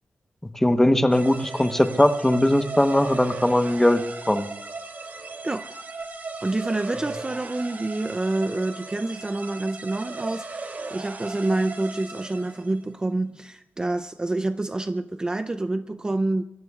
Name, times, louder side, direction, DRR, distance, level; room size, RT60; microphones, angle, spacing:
voice 1, 0.5-4.5, left 1 dB, 10° left, 8 dB, 1.0 m, -20 dB
sound 1, 1.1-12.8, right 3 dB, 45° right, 2.7 m, -37 dB
voice 2, 6.4-16.4, right 2 dB, 20° right, 9 dB, 0.5 m, -27 dB
24.5 x 23.5 x 2.4 m, 0.91 s
wide cardioid pair, 160°, 4 cm